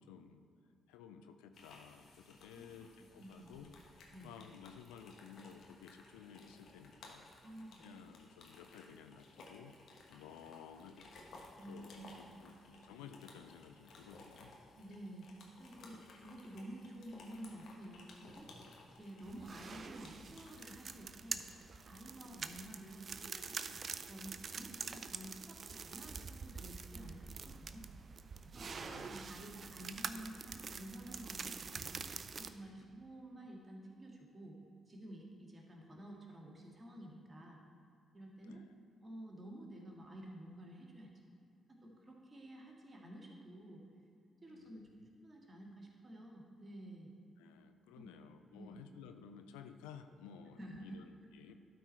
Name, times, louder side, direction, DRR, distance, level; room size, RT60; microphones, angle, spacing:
voice 1, 0.1-0.5 0.9-3.7 4.2-7.3 7.8-9.7 10.1-11.1 11.7-14.5 28.7-29.7 32.6-32.9 38.4-38.6 44.5-44.9 47.4-51.5, left 7 dB, 80° left, 8 dB, 0.4 m, -55 dB
sound 1, 1.5-20.7, left 2 dB, 65° left, 1.2 m, -59 dB
voice 2, 2.5-3.7 4.1-4.3 7.4-7.8 11.6-12.4 14.7-15.3 15.6-18.5 19.0-21.4 21.9-27.9 28.4-28.7 29.0-32.1 32.4-34.6 34.9-37.6 38.1-38.6 39.0-41.1 41.7-43.8 44.4-44.9 45.1-47.1 47.9-48.1 48.5-48.9 50.6-51.0, right 1 dB, 30° right, 0 dB, 1.8 m, -51 dB
sound 2, 19.2-32.5, right 5 dB, 50° right, 0.4 m, -46 dB
12.0 x 4.6 x 4.4 m, 2.5 s
hypercardioid pair, 45°, 0 cm